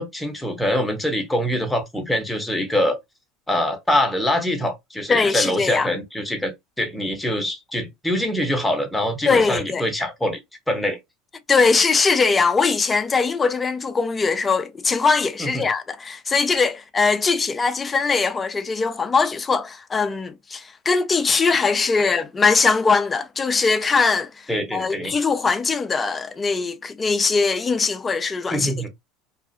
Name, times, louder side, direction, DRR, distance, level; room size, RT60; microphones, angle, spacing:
voice 1, 0.0-3.0 3.5-10.4 10.7-11.0 15.4-15.6 24.5-25.1 28.5-28.9, left 1 dB, 5° left, 0.8 m, -24 dB
voice 2, 5.1-5.9 9.2-9.8 11.5-24.3 24.7-28.9, left 4 dB, 25° left, 0.4 m, -21 dB
2.5 x 2.3 x 2.4 m
hypercardioid pair, 90°, 0 cm